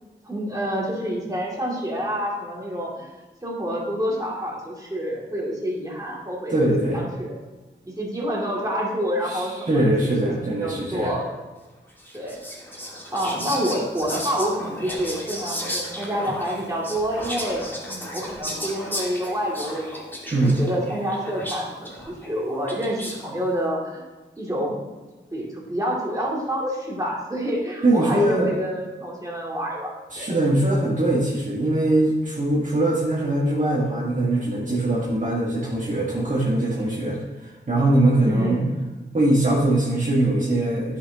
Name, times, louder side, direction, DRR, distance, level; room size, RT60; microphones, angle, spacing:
voice 1, 0.2-3.1 3.4-6.5 6.9-7.4 7.8-10.3 10.6-11.3 12.1-12.4 13.1-19.9 20.4-24.0 24.4-24.8 25.3-30.3 38.3-38.7, equal, 20° right, -4 dB, 2.6 m, -28 dB
voice 2, 6.5-7.0 9.3-11.1 20.3-20.6 27.8-28.5 30.1-38.6 39.1-41.0, right 1 dB, 45° right, -6 dB, 1.9 m, -22 dB
Whispering, 12.0-23.3, equal, 10° left, 2.1 m, -34 dB
9.8 x 6.0 x 3.0 m, 1.2 s
cardioid pair, 50°, 19 cm